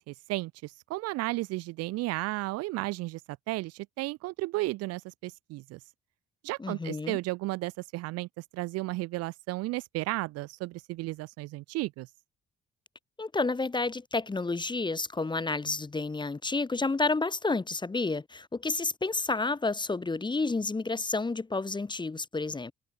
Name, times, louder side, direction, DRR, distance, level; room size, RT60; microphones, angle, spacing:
voice 1, 0.0-3.2 3.5-5.8 6.4-12.1, right 20 dB, 60° right, 0.5 m, -34 dB
voice 2, 6.6-7.2 13.2-22.7, left 3 dB, 15° left, 0.7 m, -30 dB
figure-of-eight pair, 40°, 29 cm